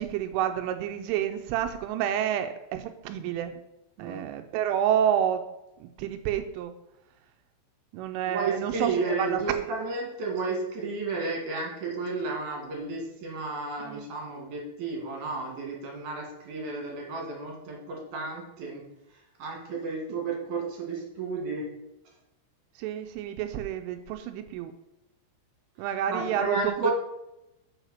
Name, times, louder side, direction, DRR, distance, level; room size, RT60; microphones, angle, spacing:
voice 1, 0.0-3.5 4.0-5.4 5.8-6.7 7.9-9.7 13.8-14.1 20.1-20.2 22.8-24.7 25.8-26.9, right 10 dB, 85° right, 7 dB, 3.1 m, -29 dB
voice 2, 8.2-18.8 19.4-21.6 26.1-26.9, right 3 dB, 50° right, -1 dB, 2.8 m, -32 dB
6.5 x 6.3 x 6.4 m, 0.92 s
omnidirectional pair, 5.7 m